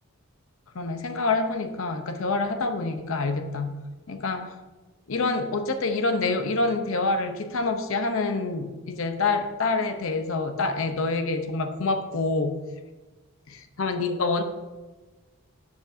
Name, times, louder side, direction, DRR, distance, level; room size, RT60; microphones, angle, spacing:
voice 1, 0.7-3.8 4.1-4.5 5.1-12.6 13.5-14.4, left 3 dB, 70° left, 8 dB, 0.6 m, -27 dB
13.0 x 5.2 x 2.6 m, 1.2 s
head